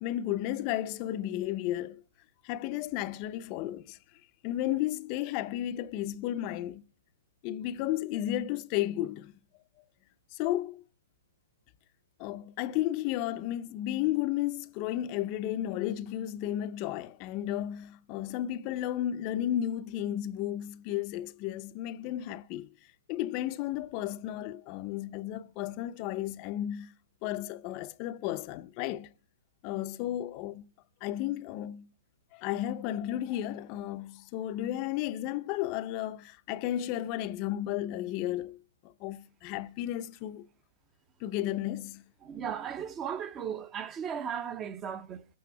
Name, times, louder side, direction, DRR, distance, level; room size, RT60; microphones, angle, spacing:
voice 1, 0.0-2.0 2.4-4.0 4.4-6.8 7.4-9.3 10.3-10.8 12.2-22.7 23.1-26.9 27.2-29.1 29.6-30.6 31.0-31.9 32.3-38.6 38.8-40.5 41.2-42.0, left 13 dB, 30° left, 0.6 m, -33 dB
voice 2, 42.2-45.3, right 8 dB, 20° right, 0.6 m, -36 dB
21.5 x 8.5 x 4.6 m
hypercardioid pair, 155°, 0 cm